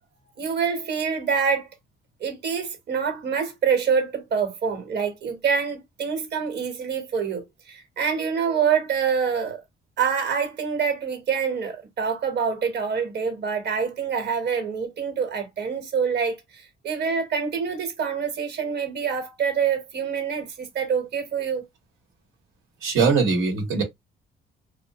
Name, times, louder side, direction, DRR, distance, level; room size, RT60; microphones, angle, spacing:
voice 1, 0.4-1.7 2.2-9.6 10.0-21.6, right 6 dB, 55° right, 1.1 m, -26 dB
voice 2, 22.8-23.8, right 5 dB, 85° right, 1.0 m, -21 dB
2.8 x 2.1 x 2.8 m
cardioid pair, 90°, 20 cm